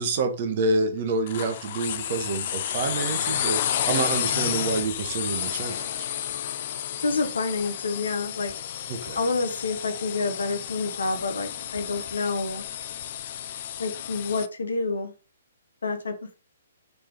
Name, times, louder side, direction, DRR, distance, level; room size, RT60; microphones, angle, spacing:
voice 1, 0.0-5.9 8.9-9.2, right 3 dB, 40° right, 0.8 m, -28 dB
sound 1, 1.3-14.5, left 10 dB, 40° left, 0.3 m, -31 dB
voice 2, 7.0-8.5 9.2-12.6 13.8-15.1 15.8-16.3, left 3 dB, 65° left, 0.9 m, -28 dB
4.1 x 3.3 x 3.4 m
figure-of-eight pair, 125°, 0 cm